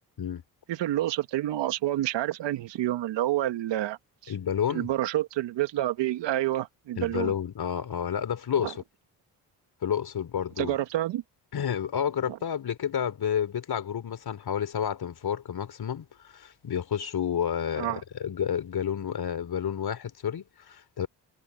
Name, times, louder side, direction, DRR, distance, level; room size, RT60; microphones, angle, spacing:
voice 1, 0.7-4.0 4.2-4.3 4.7-7.3 8.6-8.7 10.6-11.2 17.8-18.0, right 14 dB, 70° right, 2.1 m, -28 dB
voice 2, 4.3-4.9 7.0-8.8 9.8-10.8 11.5-21.1, left 8 dB, 55° left, 3.7 m, -30 dB
hypercardioid pair, 45°, 44 cm